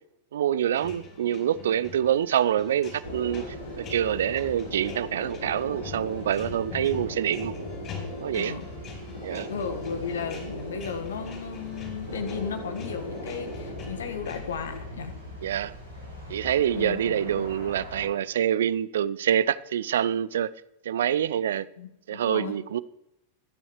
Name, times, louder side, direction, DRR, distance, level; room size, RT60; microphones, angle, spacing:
voice 1, 0.3-3.4 3.8-7.5 8.2-8.6 9.2-9.5 15.4-15.7 16.3-20.5 20.8-21.7 22.1-22.8, right 10 dB, 60° right, 18 dB, 0.5 m, -26 dB
sound 1, 0.7-14.8, left 4 dB, 35° left, 5.2 m, -44 dB
sound 2, 3.0-18.1, equal, 90° left, 5.3 m, -38 dB
voice 2, 8.3-8.7 9.5-15.2 16.7-17.5 21.8-22.6, left 6 dB, 65° left, 8 dB, 1.5 m, -35 dB
24.5 x 9.9 x 3.2 m, 0.86 s
figure-of-eight pair, 90°, 0 cm